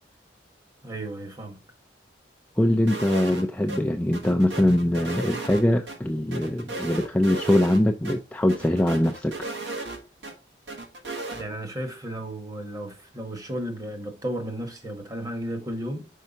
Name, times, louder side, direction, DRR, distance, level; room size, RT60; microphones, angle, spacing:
voice 1, 0.8-1.6 11.4-16.1, right 1 dB, 20° right, 1.0 m, -34 dB
voice 2, 2.6-9.3, left 1 dB, 10° left, 0.3 m, -22 dB
sound 1, 2.9-3.4 3.7-3.8 4.1-6.0 6.3-7.8 8.0-8.2 8.5-10.3 10.7-11.4, right 3 dB, 75° right, 1.3 m, -35 dB
5.5 x 4.6 x 3.8 m
head